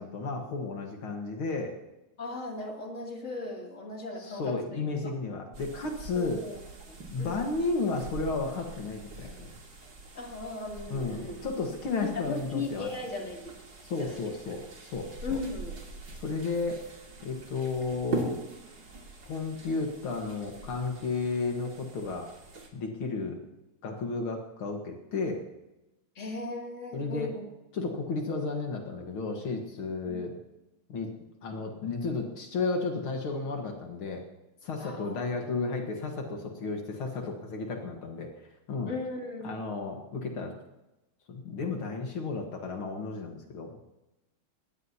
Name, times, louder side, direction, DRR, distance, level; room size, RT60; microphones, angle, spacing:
voice 1, 0.0-1.7 4.2-6.4 7.1-9.5 10.9-12.9 13.8-15.4 16.1-16.8 17.2-18.4 19.3-22.3 22.7-23.4 23.8-25.4 26.9-27.3 27.7-30.4 30.9-31.1 31.4-34.2 34.6-38.9 39.4-40.5 41.3-43.8, left 3 dB, 75° left, 2 dB, 2.4 m, -33 dB
voice 2, 2.2-5.1 6.1-6.6 6.9-7.4 10.1-11.4 12.0-13.5 14.0-14.2 15.2-15.8 26.1-27.4 30.0-30.3 34.8-35.2 38.9-39.6, left 3 dB, 35° left, -1 dB, 3.2 m, -37 dB
sound 1, 5.5-22.7, right 4 dB, 50° right, 2.9 m, -43 dB
21.0 x 17.5 x 2.9 m, 0.98 s
omnidirectional pair, 2.3 m